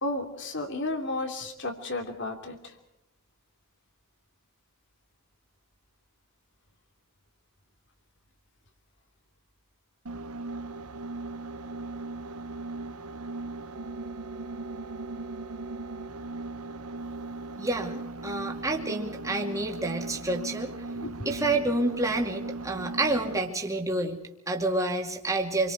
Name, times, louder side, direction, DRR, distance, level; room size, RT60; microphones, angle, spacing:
voice 1, 0.0-2.6 20.9-21.1, left 2 dB, 55° left, 6 dB, 3.0 m, -32 dB
sound 1, 10.1-23.6, right 2 dB, 85° right, 1.1 m, -38 dB
voice 2, 17.6-20.7 21.2-25.7, right 2 dB, 15° right, 1 dB, 2.4 m, -29 dB
28.0 x 23.0 x 4.6 m, 0.84 s
head